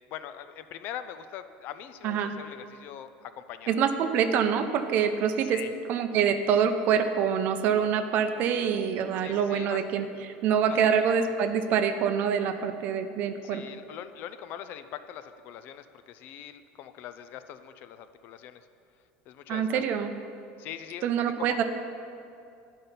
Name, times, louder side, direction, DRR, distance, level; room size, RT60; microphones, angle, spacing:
voice 1, 0.1-3.8 5.5-5.7 9.2-9.8 10.7-11.0 13.4-18.7 19.3-19.8 20.6-21.1 21.4-21.6, left 10 dB, 50° left, 11 dB, 0.4 m, -42 dB
voice 2, 3.7-5.6 5.9-13.6 19.5-20.1 21.0-21.6, right 7 dB, 45° right, 8 dB, 0.6 m, -25 dB
10.5 x 5.4 x 5.6 m, 2.5 s
cardioid pair, 160°, 4 cm